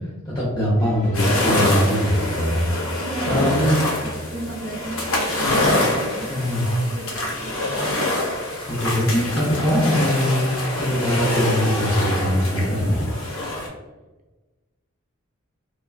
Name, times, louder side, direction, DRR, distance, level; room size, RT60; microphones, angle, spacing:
voice 1, 0.2-2.6 3.2-3.8 6.3-6.6 8.8-10.5 10.8-13.0, equal, 20° left, -9 dB, 0.5 m, -21 dB
sound 1, 0.8-6.5, equal, 40° left, 1.1 m, -39 dB
sound 2, 1.1-13.7, left 1 dB, 75° left, 0.7 m, -25 dB
voice 2, 3.0-6.4 6.8-7.8, right 1 dB, 40° right, -2 dB, 0.5 m, -34 dB
3.1 x 2.2 x 2.3 m, 1.2 s
head